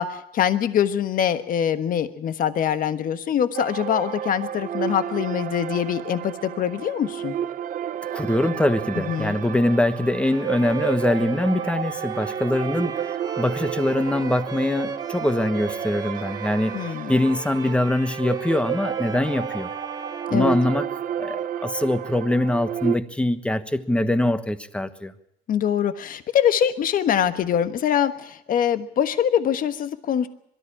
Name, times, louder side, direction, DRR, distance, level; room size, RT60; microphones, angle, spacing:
voice 1, 0.0-7.3 9.0-9.4 16.7-17.1 20.3-20.6 25.5-30.3, left 9 dB, 55° left, 11 dB, 1.3 m, -23 dB
sound 1, 3.5-23.0, right 10 dB, 50° right, 0.9 m, -31 dB
voice 2, 8.1-13.0 13.4-16.8 17.1-19.7 20.3-25.1, left 1 dB, 5° left, 11 dB, 1.3 m, -23 dB
Bowed string instrument, 10.2-21.2, right 5 dB, 25° right, 1.1 m, -37 dB
22.5 x 13.5 x 8.6 m, 0.76 s
cardioid pair, 110°, 17 cm